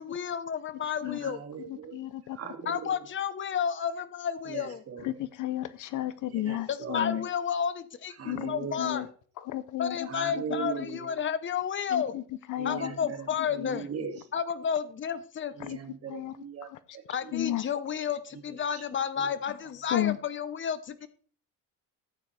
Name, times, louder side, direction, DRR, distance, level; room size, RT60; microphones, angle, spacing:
voice 1, 0.0-1.4 2.7-4.8 6.7-9.0 9.8-12.1 12.6-13.9 14.3-15.5 17.1-21.1, left 7 dB, 35° left, 1.2 m, -31 dB
voice 2, 1.0-2.0 2.3-2.9 4.4-5.1 6.3-7.2 8.2-9.0 10.1-11.1 12.6-14.3 15.6-17.3 18.5-18.8 19.2-19.3, right 6 dB, 45° right, 2.5 m, -40 dB
voice 3, 1.9-2.4 5.0-7.3 8.2-8.5 8.8-9.1 9.4-10.1 10.6-10.7 11.9-12.2 12.5-12.9 13.6-13.8 15.6-15.8 16.1-16.4 16.7-17.0 17.3-17.6 19.9-20.2, left 14 dB, 60° left, 0.8 m, -33 dB
14.0 x 9.3 x 3.5 m
cardioid pair, 125°, 34 cm